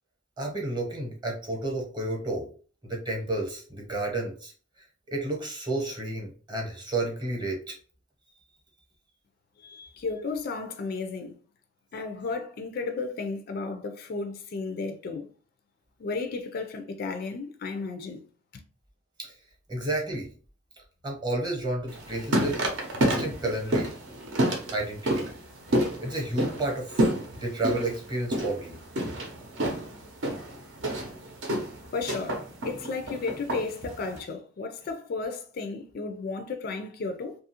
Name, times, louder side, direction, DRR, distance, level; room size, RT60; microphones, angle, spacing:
voice 1, 0.4-2.5 2.8-4.5 5.1-7.7 19.2-19.3 19.7-20.3 21.0-22.6 23.0-23.9 24.7-25.3 26.0-27.1 27.4-28.8, right 2 dB, 20° right, 0.8 m, -31 dB
voice 2, 9.6-11.4 11.9-15.3 16.0-18.2 18.5-18.6 31.9-37.4, left 4 dB, 50° left, 0.3 m, -34 dB
sound 1, 21.9-34.2, right 1 dB, 65° right, 0.7 m, -29 dB
2.7 x 2.4 x 2.8 m
head